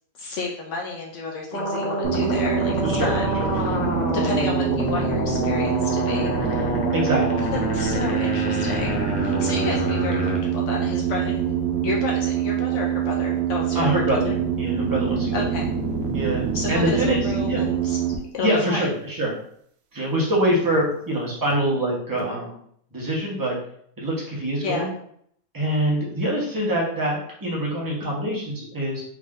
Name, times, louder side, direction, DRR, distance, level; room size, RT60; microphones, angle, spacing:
voice 1, 0.2-3.3 3.5-3.8 4.1-6.7 7.4-14.4 15.3-15.7 16.5-18.0 18.3-18.8 24.6-24.9, left 3 dB, 70° left, -1 dB, 0.9 m, -31 dB
sound 1, 1.5-10.4, left 1 dB, 45° left, 0.6 m, -27 dB
sound 2, 2.0-18.2, right 7 dB, 90° right, 1.0 m, -25 dB
voice 2, 2.8-3.1 3.4-3.5 6.9-7.5 13.7-15.5 16.1-17.2 17.5-17.6 18.4-19.3 19.9-22.6 22.9-23.6 24.0-24.9 25.5-29.0, right 1 dB, 15° right, -4 dB, 0.8 m, -24 dB
3.5 x 2.6 x 3.5 m, 0.66 s
omnidirectional pair, 1.4 m